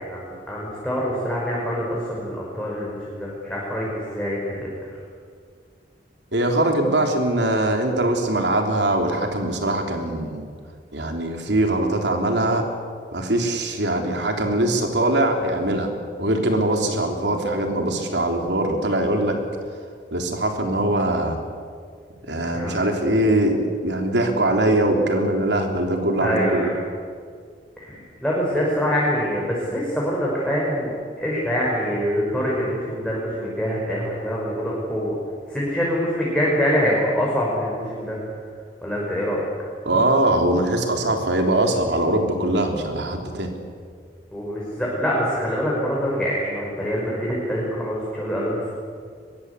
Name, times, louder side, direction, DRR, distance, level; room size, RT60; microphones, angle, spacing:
voice 1, 0.0-4.8 22.5-22.8 26.2-26.7 27.8-30.9 31.2-35.2 35.5-38.2 38.8-39.4 44.3-48.7, equal, 5° left, -5 dB, 5.6 m, -25 dB
voice 2, 6.3-10.5 10.9-12.6 13.1-15.9 16.2-19.3 20.1-21.4 22.3-26.7 39.9-43.5, right 1 dB, 80° right, 3 dB, 3.5 m, -22 dB
23.0 x 22.5 x 8.3 m, 2.1 s
head